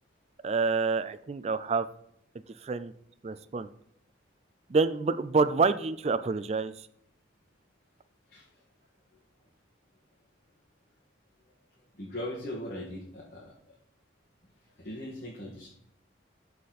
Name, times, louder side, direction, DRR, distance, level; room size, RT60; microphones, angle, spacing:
voice 1, 0.4-1.9 2.6-2.9 3.2-3.7 4.7-6.7, right 4 dB, 35° right, 12 dB, 0.3 m, -27 dB
voice 2, 12.0-13.5 14.8-15.7, left 1 dB, 45° left, -5 dB, 1.6 m, -39 dB
12.5 x 4.2 x 4.1 m, 0.72 s
head